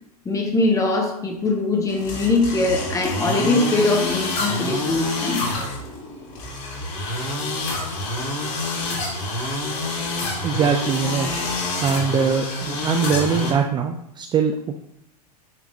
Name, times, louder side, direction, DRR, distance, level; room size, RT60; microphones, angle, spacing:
voice 1, 0.2-5.4, left 2 dB, 15° left, 2 dB, 1.5 m, -22 dB
sound 1, 1.9-13.5, left 2 dB, 50° left, 2.8 m, -27 dB
voice 2, 10.4-11.3 11.8-14.8, right 6 dB, 20° right, 5 dB, 0.5 m, -22 dB
9.3 x 4.7 x 2.8 m, 0.79 s
hypercardioid pair, 100°, 20 cm